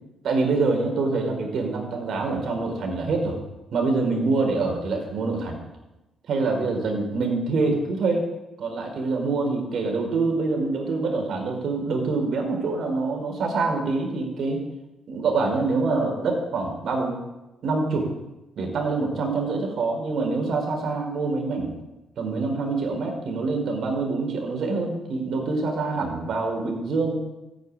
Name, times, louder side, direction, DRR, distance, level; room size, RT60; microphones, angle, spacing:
voice 1, 0.2-3.4 3.7-5.6 6.3-8.3 8.6-14.6 15.1-17.2 17.6-18.1 18.6-21.7 22.2-27.2, right 3 dB, 65° right, 2 dB, 4.9 m, -25 dB
14.0 x 9.6 x 9.8 m, 1.0 s
cardioid pair, 90°, 0 cm